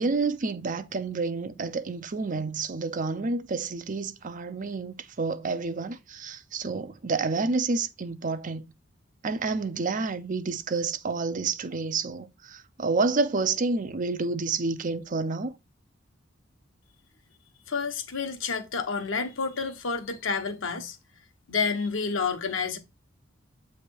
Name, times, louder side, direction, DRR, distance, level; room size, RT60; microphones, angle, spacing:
voice 1, 0.0-8.6 9.2-15.5, right 4 dB, 40° right, 0.6 m, -29 dB
voice 2, 17.7-21.0 21.5-22.8, left 5 dB, 80° left, 1.1 m, -29 dB
7.9 x 3.3 x 4.4 m
head